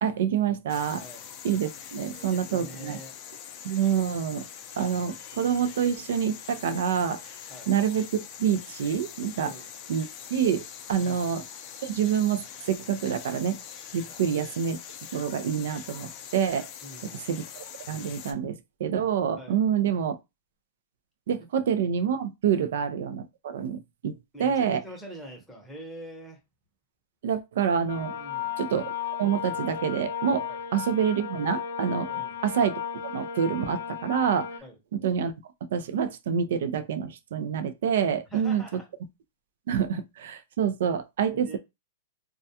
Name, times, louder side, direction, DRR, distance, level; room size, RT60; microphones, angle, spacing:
voice 1, 0.0-1.0 1.4-3.0 3.6-4.4 4.8-7.2 7.7-8.1 8.4-9.5 9.9-10.1 10.3-10.6 10.9-11.4 11.8-13.6 13.9-14.8 15.1-16.7 17.3-17.4 17.9-20.2 21.3-24.8 27.2-28.1 28.6-28.9 29.2-32.1 32.4-34.5 35.0-35.3 35.7-38.6 39.7-41.6, right 8 dB, 65° right, 0.4 m, -27 dB
sound 1, 0.7-18.3, left 8 dB, 30° left, 0.4 m, -43 dB
voice 2, 2.1-3.2 7.5-7.7 9.4-9.7 11.0-11.2 14.1-14.3 16.8-17.3 19.4-19.6 22.5-22.6 24.3-26.4 28.1-28.5 30.5-30.6 32.1-32.4 34.6-34.8 38.3-38.8 41.3-41.6, right 1 dB, ahead, 0.8 m, -44 dB
sound 2, 27.9-34.6, left 8 dB, 90° left, 0.4 m, -35 dB
2.2 x 2.2 x 2.7 m
supercardioid pair, 160°, 0 cm